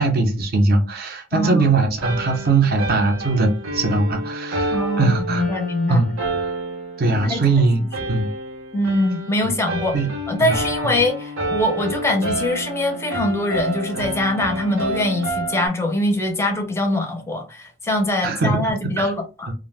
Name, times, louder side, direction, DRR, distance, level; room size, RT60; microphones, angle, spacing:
voice 1, 0.0-5.4 5.9-6.1 7.0-8.3 9.9-10.1 10.4-10.5 18.2-19.1, right 3 dB, 50° right, 0.6 m, -20 dB
voice 2, 1.3-1.7 4.7-6.0 7.2-7.9 8.7-9.9 10.3-19.5, left 1 dB, 15° left, 0.5 m, -23 dB
sound 1, 2.0-15.7, right 1 dB, 80° right, 0.8 m, -29 dB
2.4 x 2.1 x 3.2 m
head